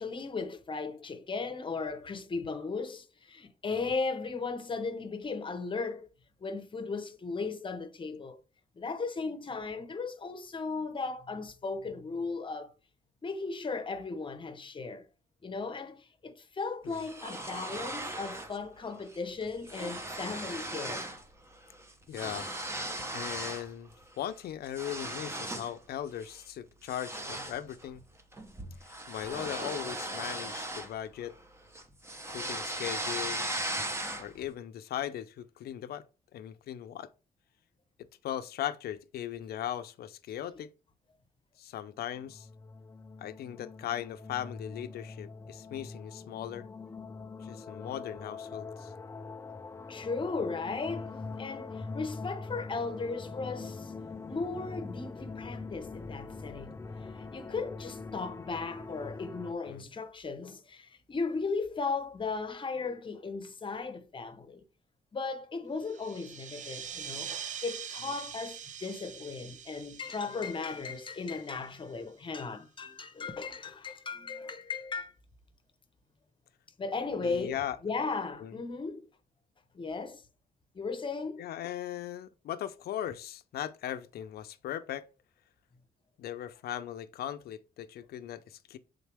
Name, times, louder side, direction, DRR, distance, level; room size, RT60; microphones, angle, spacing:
voice 1, 0.0-6.1 6.4-8.4 8.8-12.7 13.2-15.1 15.4-21.1 49.9-53.9 54.3-56.8 57.1-64.6 65.1-67.3 67.6-75.1 76.8-79.0 79.7-80.2 80.7-81.4, left 4 dB, 30° left, 0.9 m, -36 dB
sound 1, 16.9-18.6 18.9-19.2 19.4-21.2 21.5-23.7 24.1-25.8 26.2-26.4 26.9-31.4 31.7-34.5, right 1 dB, 15° right, 0.9 m, -38 dB
voice 2, 22.1-22.5 23.1-23.9 24.2-28.0 28.8-31.3 32.3-33.5 34.2-36.0 36.3-37.1 38.0-40.7 41.6-42.5 43.2-46.7 47.4-48.9 59.6-59.9 77.2-77.8 78.4-78.6 81.4-85.1 86.2-88.8, left 11 dB, 90° left, 0.6 m, -38 dB
sound 2, 42.1-59.5, left 4 dB, 15° left, 0.3 m, -43 dB
sound 3, 65.8-72.0, right 8 dB, 55° right, 0.5 m, -43 dB
7.3 x 3.9 x 3.4 m
cardioid pair, 115°, 16 cm